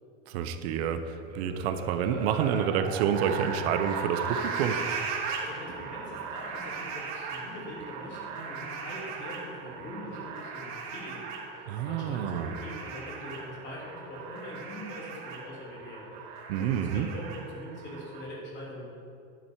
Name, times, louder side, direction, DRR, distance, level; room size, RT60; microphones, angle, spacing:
voice 1, 0.3-4.8 11.7-12.6 16.5-17.1, right 8 dB, 75° right, 9 dB, 0.9 m, -28 dB
sound 1, 1.2-18.2, right 5 dB, 55° right, 1.8 m, -38 dB
voice 2, 5.4-18.9, left 1 dB, 35° left, -4 dB, 3.0 m, -43 dB
11.5 x 8.8 x 4.7 m, 2.5 s
cardioid pair, 165°, 32 cm